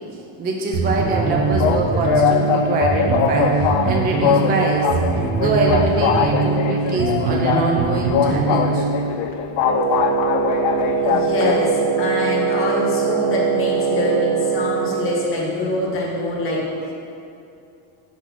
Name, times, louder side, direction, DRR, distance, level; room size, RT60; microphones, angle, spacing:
voice 1, 0.4-4.9 5.4-8.9, right 3 dB, 20° right, -1 dB, 0.4 m, -24 dB
sound 1, 0.7-9.2, right 4 dB, 45° right, 0.8 m, -22 dB
sound 2, 1.2-11.6, left 8 dB, 70° left, 0.5 m, -22 dB
Wind instrument woodwind instrument, 9.6-15.3, right 6 dB, 5° right, 1.1 m, -22 dB
voice 2, 11.0-16.6, left 2 dB, 25° left, -5 dB, 1.3 m, -24 dB
5.5 x 4.2 x 4.6 m, 2.6 s
cardioid pair, 145°, 48 cm